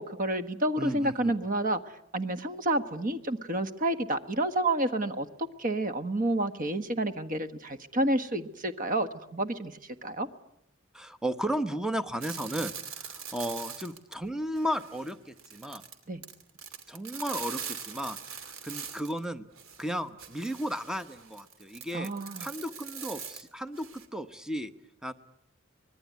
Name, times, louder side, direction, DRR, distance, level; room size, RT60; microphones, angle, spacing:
voice 1, 0.0-1.8 2.1-5.3 5.6-10.3 16.1-16.2 21.9-22.5, right 1 dB, 40° right, 10 dB, 1.5 m, -29 dB
voice 2, 0.8-1.3 10.9-15.8 16.9-19.5 19.8-22.1 22.4-23.9 24.1-24.7 25.0-25.1, equal, 5° right, 11 dB, 1.0 m, -34 dB
sound 1, 12.2-14.3 14.6-19.2 19.5-24.1, right 7 dB, 85° right, 2.8 m, -42 dB
25.0 x 21.0 x 9.5 m, 0.79 s
head